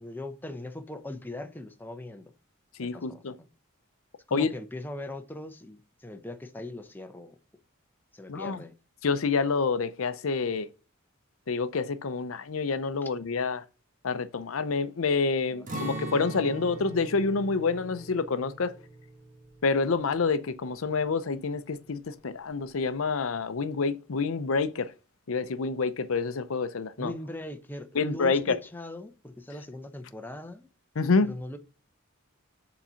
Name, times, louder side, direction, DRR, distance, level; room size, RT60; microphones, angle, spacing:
voice 1, 0.0-2.3 2.8-3.5 4.3-7.4 8.1-8.7 13.0-13.1 15.5-15.9 27.0-30.7 31.2-31.6, left 1 dB, 10° left, 0.7 m, -40 dB
voice 2, 2.8-3.3 4.3-4.5 8.3-8.6 9.0-10.7 11.5-13.6 14.0-18.7 19.6-24.9 25.3-27.1 27.9-28.6 31.0-31.3, left 4 dB, 75° left, 0.6 m, -28 dB
Acoustic guitar, 15.7-21.6 21.9-22.1 22.5-23.0, right 2 dB, 40° right, 1.4 m, -41 dB
7.4 x 4.1 x 5.6 m
head